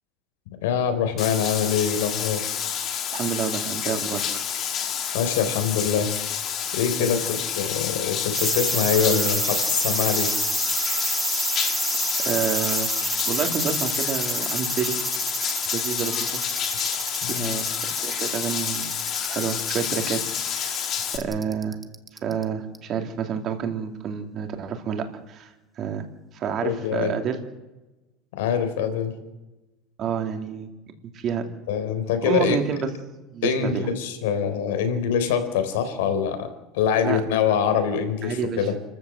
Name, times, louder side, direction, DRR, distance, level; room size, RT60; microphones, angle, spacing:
voice 1, 0.6-2.5 5.1-6.1 6.7-10.3 17.2-17.5 26.6-27.2 28.3-29.1 31.7-32.6 33.4-36.5 36.7-38.8, left 7 dB, 85° left, 8 dB, 4.1 m, -24 dB
Bathtub (filling or washing), 1.2-21.2, left 8 dB, 30° left, 2.2 m, -29 dB
voice 2, 3.1-4.4 6.9-7.1 12.2-12.9 13.3-15.0 15.7-16.4 17.3-17.8 18.0-18.9 19.3-20.2 20.6-21.8 22.2-25.5 25.8-26.0 26.3-27.4 30.0-30.7 31.1-31.4 32.2-32.9 33.3-33.9 37.0-37.2 38.2-38.6, right 7 dB, 25° right, 5 dB, 2.4 m, -29 dB
sound 1, 8.3-22.4 22.7-22.8, right 2 dB, 5° right, 0.9 m, -28 dB
29.5 x 14.0 x 7.8 m, 1.1 s
supercardioid pair, 180°, 0 cm